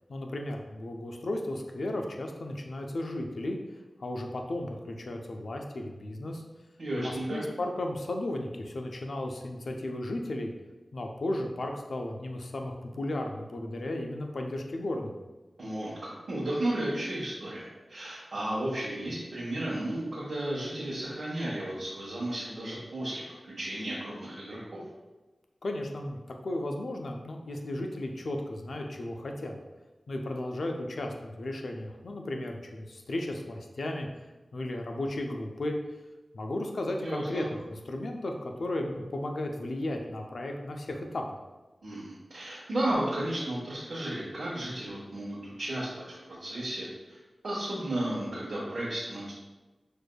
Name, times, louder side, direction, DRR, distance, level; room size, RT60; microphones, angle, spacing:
voice 1, 0.1-3.6 4.0-6.4 7.0-10.5 10.9-15.1 25.6-29.6 30.1-34.1 34.5-35.7 36.3-41.2, left 1 dB, 80° left, 3 dB, 0.4 m, -34 dB
voice 2, 6.8-7.4 15.6-23.2 23.6-24.8 37.0-37.4 41.8-46.9 47.4-49.3, right 1 dB, 75° right, -8 dB, 1.0 m, -33 dB
6.2 x 2.6 x 2.2 m, 1.2 s
cardioid pair, 50°, 0 cm